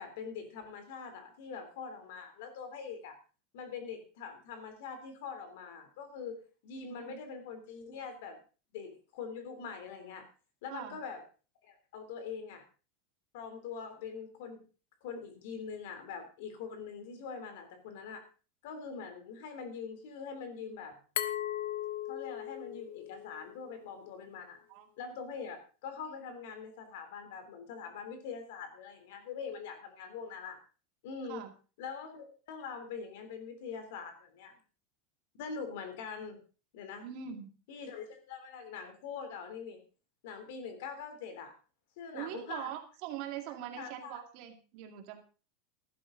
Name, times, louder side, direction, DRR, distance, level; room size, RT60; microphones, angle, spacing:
voice 1, 0.0-3.1 3.5-6.4 6.6-8.4 8.7-10.2 10.6-11.2 11.6-12.6 13.3-14.6 15.0-18.2 18.6-20.9 22.1-24.6 25.0-30.6 31.0-31.4 31.8-34.5 35.4-36.4 36.7-37.1 37.7-39.8 40.2-41.5 42.0-42.7 43.8-44.2, left 6 dB, 65° left, 7 dB, 3.4 m, -43 dB
Glass, 21.2-23.9, left 12 dB, 85° left, 1.3 m, -38 dB
voice 2, 37.0-37.5 42.1-45.2, right 10 dB, 45° right, 5 dB, 2.2 m, -42 dB
14.5 x 12.0 x 3.9 m, 0.36 s
supercardioid pair, 175°, 0 cm